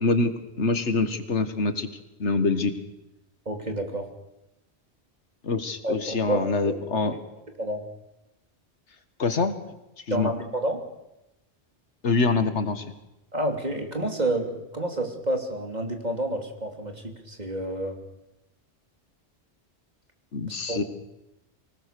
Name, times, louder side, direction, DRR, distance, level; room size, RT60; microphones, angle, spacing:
voice 1, 0.0-1.9 2.2-2.7 5.4-7.2 9.2-9.6 10.0-10.3 12.0-12.9 20.3-20.8, left 3 dB, 80° left, 10 dB, 1.8 m, -25 dB
voice 2, 3.4-4.1 5.8-6.8 7.6-7.8 10.1-10.8 13.3-18.0 20.5-20.8, right 1 dB, 40° right, 4 dB, 3.1 m, -29 dB
24.5 x 19.0 x 6.8 m, 0.93 s
omnidirectional pair, 1.2 m